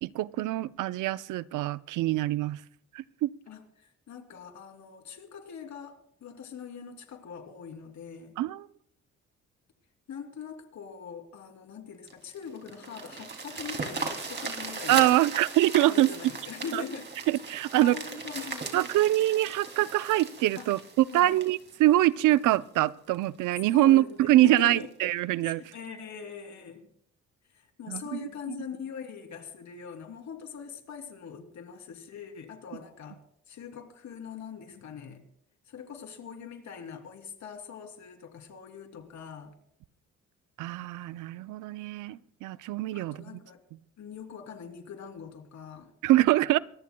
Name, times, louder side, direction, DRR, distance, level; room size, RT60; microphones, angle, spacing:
voice 1, 0.0-2.6 2.9-3.3 8.4-8.7 14.9-16.1 16.7-16.8 17.3-18.0 18.7-25.7 27.9-28.0 40.6-43.2 46.0-46.6, right 15 dB, 85° right, 0.6 m, -24 dB
voice 2, 3.5-8.3 10.1-15.1 15.9-17.1 17.7-18.8 20.6-20.7 21.1-21.4 23.7-24.9 25.4-26.9 27.5-33.2 33.5-35.2 35.7-39.5 42.9-43.6 44.0-45.9, left 7 dB, 65° left, 3.0 m, -42 dB
sound 1, 12.1-22.6 23.1-23.2 23.7-23.8 24.1-24.2 24.6-24.8 25.7-25.8, right 4 dB, 35° right, 2.8 m, -38 dB
25.0 x 19.0 x 2.2 m
cardioid pair, 90°, 30 cm